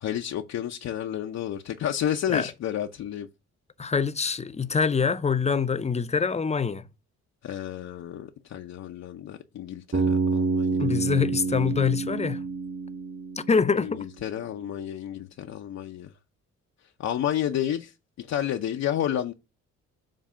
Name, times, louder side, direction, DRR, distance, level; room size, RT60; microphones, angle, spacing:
voice 1, 0.0-3.3 7.4-10.8 13.8-16.1 17.0-17.9 18.2-19.3, left 10 dB, 60° left, 0.7 m, -31 dB
voice 2, 3.8-6.8 10.8-12.4 13.5-14.0, left 5 dB, 20° left, 0.6 m, -25 dB
Bass guitar, 9.9-14.0, right 4 dB, 45° right, 2.9 m, -28 dB
7.4 x 2.7 x 5.5 m
cardioid pair, 90°, 30 cm